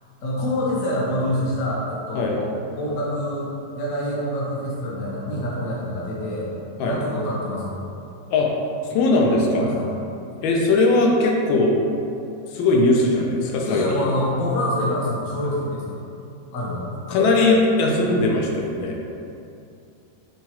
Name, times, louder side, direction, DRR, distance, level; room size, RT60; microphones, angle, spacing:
voice 1, 0.2-3.5 3.7-6.5 6.8-7.7 9.6-9.9 13.6-16.0 16.5-17.3, left 1 dB, 60° left, -5 dB, 1.0 m, -26 dB
voice 2, 8.9-9.7 10.4-11.8 12.5-14.1 17.1-19.0, left 2 dB, 90° left, 0 dB, 1.4 m, -19 dB
5.8 x 2.3 x 2.9 m, 2.6 s
omnidirectional pair, 2.1 m